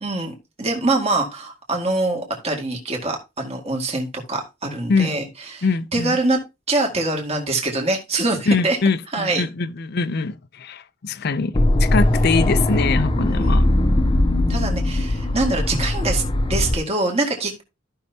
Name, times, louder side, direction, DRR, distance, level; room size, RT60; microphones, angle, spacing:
voice 1, 0.0-5.3 5.5-5.6 5.9-6.4 6.7-8.8 9.1-9.4 13.3-13.6 14.5-16.2 16.5-17.6, right 2 dB, 35° right, 2.0 m, -24 dB
voice 2, 5.6-6.2 8.5-13.7, left 4 dB, 55° left, 0.5 m, -23 dB
sound 1, 11.5-16.8, left 1 dB, 25° left, 0.8 m, -19 dB
14.0 x 5.7 x 2.8 m
head